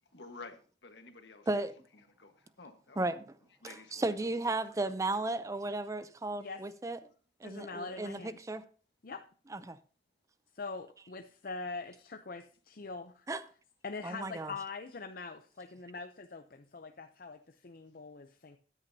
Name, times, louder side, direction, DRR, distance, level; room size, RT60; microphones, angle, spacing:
voice 1, 0.1-1.5 1.9-3.0 3.6-4.1 4.4-4.9, left 3 dB, 75° left, 1.4 m, -52 dB
voice 2, 3.6-7.0 7.4-8.6 9.5-9.8 13.3-13.4 14.0-14.5, right 2 dB, 20° right, 0.5 m, -34 dB
voice 3, 7.4-8.4 9.0-9.2 10.5-13.3 13.8-18.6, left 4 dB, 50° left, 0.6 m, -43 dB
13.5 x 9.7 x 2.8 m
head